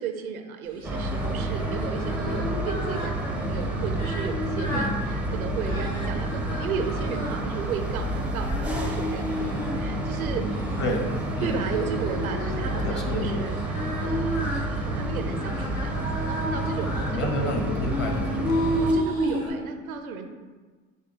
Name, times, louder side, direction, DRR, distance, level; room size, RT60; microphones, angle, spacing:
voice 1, 0.0-10.6 11.4-17.4 18.8-20.3, right 6 dB, 85° right, 6 dB, 0.5 m, -34 dB
Singing, 0.7-19.5, left 1 dB, 75° left, 1.0 m, -33 dB
sound 1, 0.8-18.9, right 2 dB, 5° right, 0.4 m, -30 dB
voice 2, 10.8-11.6 12.8-13.4 17.1-19.0, left 1 dB, 25° left, 1 dB, 0.9 m, -30 dB
6.1 x 2.3 x 2.8 m, 1.4 s
hypercardioid pair, 75°, 41 cm